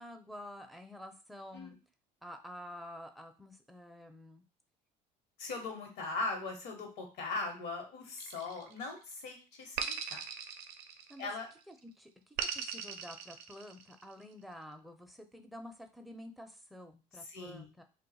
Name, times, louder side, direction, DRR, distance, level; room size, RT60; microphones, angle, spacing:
voice 1, 0.0-1.8 2.2-4.4 11.1-11.3 11.7-17.8, left 1 dB, ahead, 4 dB, 0.5 m, -49 dB
voice 2, 5.4-10.2 11.2-11.5 17.2-17.7, left 3 dB, 75° left, 3 dB, 1.1 m, -40 dB
sound 1, 8.2-9.0 9.8-11.4 12.4-14.0, right 7 dB, 80° right, 0.5 m, -39 dB
2.4 x 2.3 x 4.1 m, 0.34 s
supercardioid pair, 95°, 17 cm